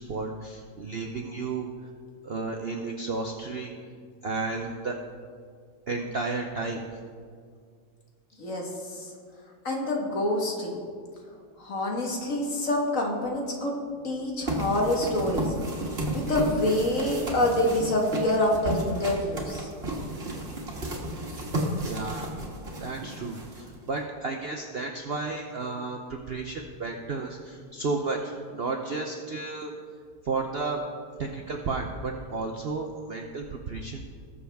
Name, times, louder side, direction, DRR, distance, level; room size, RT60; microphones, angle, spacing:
voice 1, 0.0-1.7 2.2-3.7 4.2-5.0 5.9-6.8 21.9-22.3 22.8-29.7 30.2-30.8 31.2-34.1, right 3 dB, 55° right, 3 dB, 0.7 m, -32 dB
voice 2, 8.4-9.1 9.6-10.8 11.6-13.7 14.0-15.5 15.9-19.7, left 1 dB, 50° left, 0 dB, 1.9 m, -27 dB
sound 1, 14.5-24.0, right 1 dB, 35° right, 1.8 m, -33 dB
19.0 x 7.0 x 3.5 m, 2.1 s
omnidirectional pair, 1.8 m